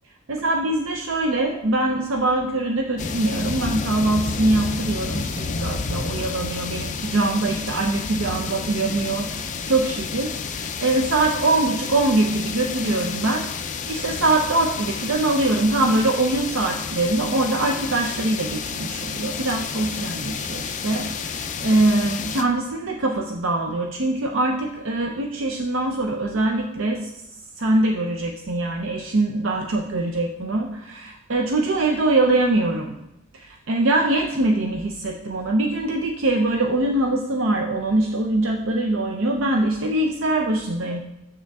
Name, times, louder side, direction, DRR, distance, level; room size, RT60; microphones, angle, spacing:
voice 1, 0.3-13.5 13.9-27.1 27.6-33.0 33.3-41.0, right 2 dB, 70° right, 2 dB, 0.6 m, -23 dB
sound 1, 3.0-22.4, left 5 dB, 40° left, 0.5 m, -30 dB
7.0 x 6.5 x 3.5 m, 0.90 s
head